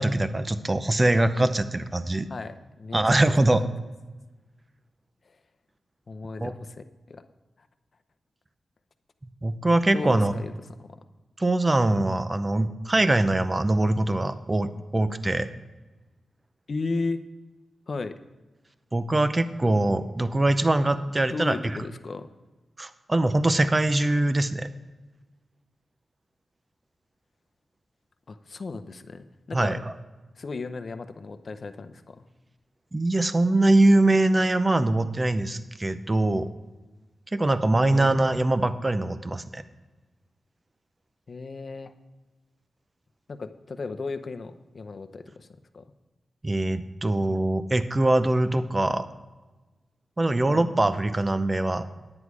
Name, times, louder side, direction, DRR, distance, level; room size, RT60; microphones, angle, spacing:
voice 1, 0.0-2.3 2.9-3.6 6.4-6.5 9.4-10.3 11.4-15.5 18.9-21.8 22.8-24.7 29.5-29.9 32.9-36.5 37.3-39.6 46.4-49.1 50.2-51.9, right 2 dB, 25° right, 11 dB, 0.6 m, -23 dB
voice 2, 2.3-3.2 5.2-5.4 6.1-7.2 7.6-7.7 9.9-10.5 10.8-11.0 16.7-17.2 17.9-18.2 21.3-22.3 28.3-29.8 30.4-32.3 37.9-38.2 41.3-41.9 43.3-45.5 45.7-45.9 50.4-50.7, left 3 dB, 50° left, 9 dB, 0.7 m, -35 dB
10.5 x 9.7 x 4.8 m, 1.2 s
wide cardioid pair, 95°, 0 cm